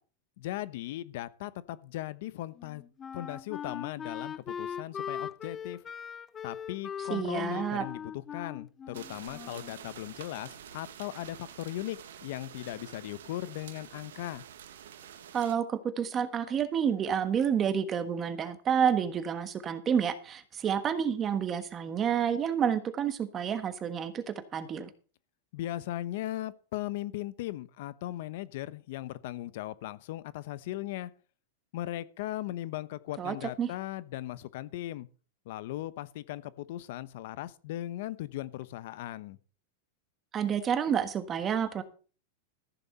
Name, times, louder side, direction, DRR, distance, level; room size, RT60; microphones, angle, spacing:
voice 1, 0.4-2.8 3.1-5.8 6.4-14.4 25.5-31.1 31.7-35.1 35.5-39.4, left 14 dB, 60° left, 0.9 m, -38 dB
Wind instrument woodwind instrument, 2.6-9.8, left 8 dB, 20° left, 0.5 m, -40 dB
voice 2, 7.1-7.8 15.3-24.9 33.2-33.7 40.3-41.8, right 8 dB, 25° right, 1.4 m, -29 dB
sound 1, 8.9-15.5, right 9 dB, 90° right, 1.4 m, -48 dB
14.5 x 7.0 x 5.7 m
supercardioid pair, 150°, 0 cm